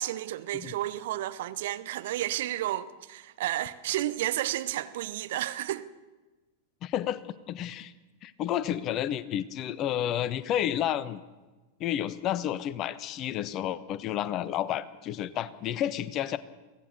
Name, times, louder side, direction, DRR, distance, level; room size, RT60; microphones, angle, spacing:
voice 1, 0.0-5.8, right 14 dB, 55° right, 1.1 m, -32 dB
voice 2, 6.8-7.9 8.2-11.2 11.8-16.4, left 11 dB, 35° left, 1.1 m, -31 dB
23.0 x 17.5 x 6.7 m
figure-of-eight pair, 90°, 0 cm